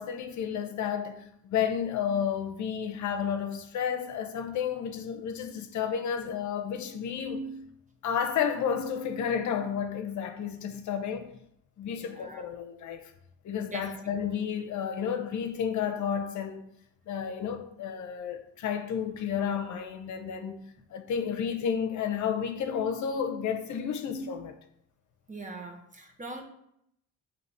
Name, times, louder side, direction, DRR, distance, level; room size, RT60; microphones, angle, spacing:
voice 1, 0.0-7.6 8.0-11.4 11.8-13.1 13.4-16.7 17.1-20.6 20.9-24.6, left 7 dB, 70° left, 0.8 m, -31 dB
voice 2, 11.9-12.4 13.7-13.9 25.3-26.4, right 3 dB, 25° right, 1.1 m, -41 dB
6.7 x 2.9 x 5.5 m
cardioid pair, 90°, 30 cm